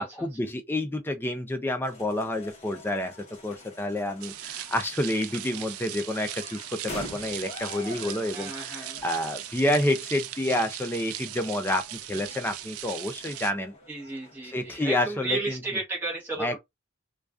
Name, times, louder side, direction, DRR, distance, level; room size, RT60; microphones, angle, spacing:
voice 1, 0.0-3.2 3.4-13.7 14.4-15.6 16.4-16.6, left 1 dB, 10° left, 0.3 m, -29 dB
sound 1, 1.8-15.3, left 2 dB, 30° left, 0.8 m, -47 dB
sound 2, 4.2-13.5, right 12 dB, 85° right, 0.3 m, -39 dB
voice 2, 8.3-9.0 13.9-16.6, right 2 dB, 10° right, 0.8 m, -33 dB
2.3 x 2.3 x 2.3 m
head